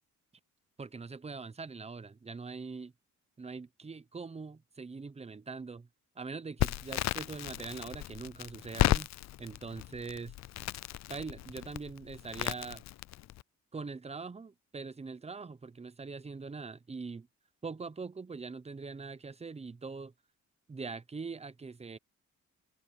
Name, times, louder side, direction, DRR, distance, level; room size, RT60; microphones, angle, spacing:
voice 1, 0.8-2.9 3.4-5.9 6.2-9.1 9.4-10.4 11.1-12.8 13.7-17.3 17.6-20.1 20.7-22.0, right 4 dB, 20° right, 0.9 m, -42 dB
Crackle, 6.6-13.4, left 15 dB, 60° left, 0.5 m, -34 dB
cardioid pair, 90°, 30 cm